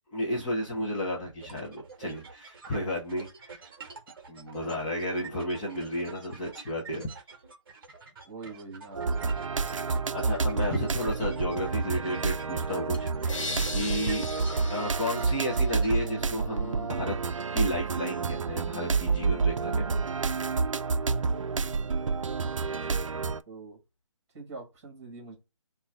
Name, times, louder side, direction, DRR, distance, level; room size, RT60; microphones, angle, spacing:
voice 1, 0.1-3.6 4.3-7.1 9.8-9.9 10.1-13.3 13.7-14.2 14.6-17.2 17.5-20.0, equal, 10° left, 0.5 m, -32 dB
sound 1, 1.4-16.1, right 4 dB, 45° right, 0.9 m, -47 dB
voice 2, 4.6-4.9 8.2-9.1 22.7-23.1 23.5-23.8 24.3-25.4, right 3 dB, 30° right, 2.0 m, -44 dB
sound 2, 8.9-23.4, right 4 dB, 80° right, 0.4 m, -29 dB
sound 3, 13.3-16.3, left 3 dB, 80° left, 0.8 m, -39 dB
3.8 x 2.3 x 3.5 m
figure-of-eight pair, 155°, 16 cm